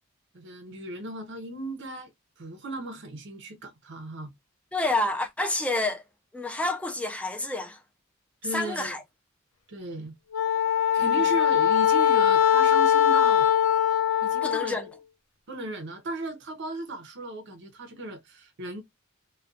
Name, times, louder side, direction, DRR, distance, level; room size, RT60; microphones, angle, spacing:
voice 1, 0.3-2.1 2.4-4.3 8.4-8.9 9.7-10.1 10.7-13.5 14.2-14.9 15.5-18.8, right 2 dB, 55° right, 0.6 m, -36 dB
voice 2, 4.7-6.0 6.3-7.8 8.5-9.0 11.0-11.1 14.4-14.8, left 2 dB, 5° left, 0.4 m, -28 dB
Wind instrument woodwind instrument, 10.3-14.7, left 10 dB, 85° left, 0.5 m, -21 dB
2.3 x 2.2 x 2.5 m
head